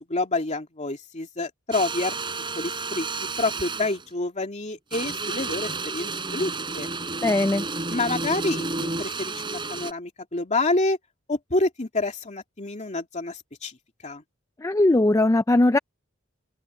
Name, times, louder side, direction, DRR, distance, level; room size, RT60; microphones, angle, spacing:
voice 1, 0.1-2.2 2.6-3.1 3.4-6.9 7.9-11.0 11.3-13.8 14.0-14.2, left 2 dB, 35° left, 2.7 m, -28 dB
sound 1, 1.7-4.0 4.9-9.9, right 3 dB, 25° right, 4.9 m, -31 dB
voice 2, 7.2-7.6 14.6-15.8, left 2 dB, 15° left, 0.4 m, -19 dB
open air
head